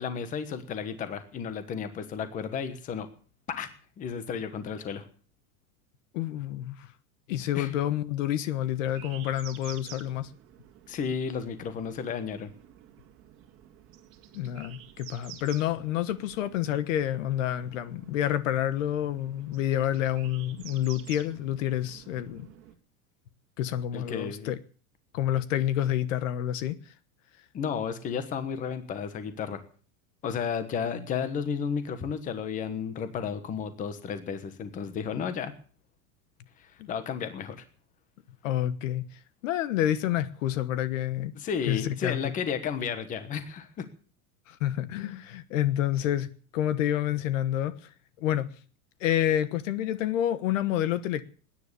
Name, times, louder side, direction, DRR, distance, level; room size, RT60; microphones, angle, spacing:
voice 1, 0.0-3.1 3.5-5.0 7.5-7.7 10.9-12.5 23.9-24.5 27.5-29.6 30.2-35.5 36.6-37.6 41.3-43.9, left 7 dB, 20° left, 1.3 m, -33 dB
voice 2, 6.1-6.9 7.3-10.3 14.3-22.5 23.6-24.6 25.1-26.8 38.4-39.1 39.4-41.3 41.7-42.3 44.5-47.7 48.2-48.5 49.0-51.2, left 12 dB, 60° left, 1.3 m, -28 dB
sound 1, 8.9-22.7, right 11 dB, 30° right, 2.1 m, -50 dB
20.0 x 10.0 x 6.8 m
supercardioid pair, 175°, 43 cm